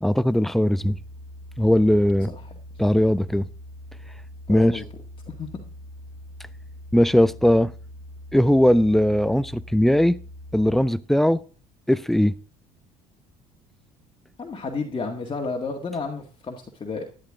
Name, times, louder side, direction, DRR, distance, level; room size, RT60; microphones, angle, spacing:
voice 1, 0.0-1.0 1.6-2.3 2.8-3.5 4.5-4.7 6.9-7.7 8.3-10.2 10.5-11.4 11.9-12.3, equal, ahead, 0.5 m, -19 dB
sound 1, 0.8-10.8, left 1 dB, 80° right, 1.5 m, -42 dB
voice 2, 4.5-4.9 5.3-5.5 14.4-17.0, left 4 dB, 30° left, 1.7 m, -32 dB
11.5 x 10.5 x 3.7 m
hypercardioid pair, 60°, 18 cm